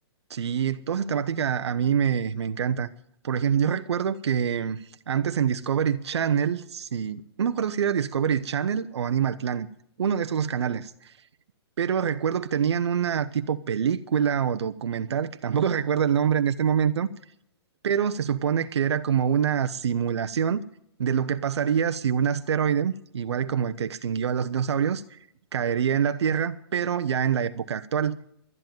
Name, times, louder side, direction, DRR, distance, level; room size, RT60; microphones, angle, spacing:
voice 1, 0.3-2.9 3.2-9.7 10.0-11.2 11.8-17.1 17.8-20.6 21.0-25.2 25.5-28.2, right 8 dB, 80° right, 0.8 m, -25 dB
12.0 x 10.5 x 9.1 m
hypercardioid pair, 155°, 14 cm